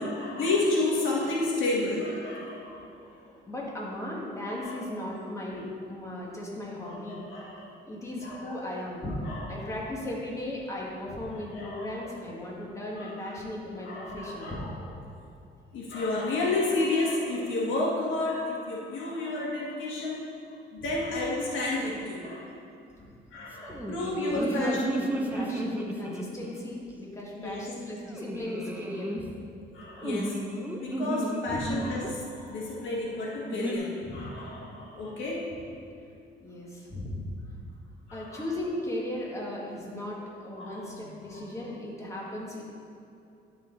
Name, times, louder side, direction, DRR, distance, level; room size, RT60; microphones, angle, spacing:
voice 1, 0.0-2.8 4.5-4.7 6.8-7.7 8.2-8.8 9.3-9.7 11.5-12.1 13.0-13.1 13.8-14.6 15.7-20.2 20.7-22.4 23.3-24.8 27.4-27.6 29.7-30.5 30.8-35.5 38.1-38.5 40.6-41.0 41.3-41.4, left 2 dB, 75° left, -4 dB, 1.9 m, -31 dB
voice 2, 3.5-7.2 7.9-9.1 9.5-14.6 20.8-20.9 24.3-24.8 25.1-29.3 31.5-31.7 34.0-34.3 36.4-37.3 38.1-42.6, left 1 dB, 15° left, -4 dB, 1.8 m, -36 dB
sound 1, 23.6-26.7 28.1-29.2 30.0-32.1 33.5-33.8, right 1 dB, 10° right, 0.8 m, -33 dB
12.5 x 4.3 x 3.9 m, 2.7 s
cardioid pair, 90°, 20 cm